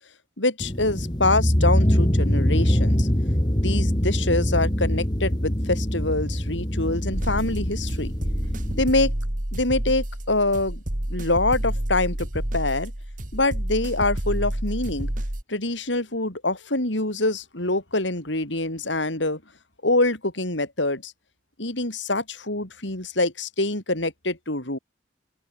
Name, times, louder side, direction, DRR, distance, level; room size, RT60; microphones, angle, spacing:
voice 1, 0.4-3.1 3.5-8.1 8.8-9.1 9.5-10.8 11.1-12.9 13.3-15.1 15.5-19.4 19.8-21.1 21.6-24.8, left 2 dB, 85° left, 6.5 m, -25 dB
sound 1, 0.6-8.8, equal, 25° left, 2.1 m, -23 dB
sound 2, 7.1-15.4, right 1 dB, 45° right, 2.7 m, -29 dB
open air
head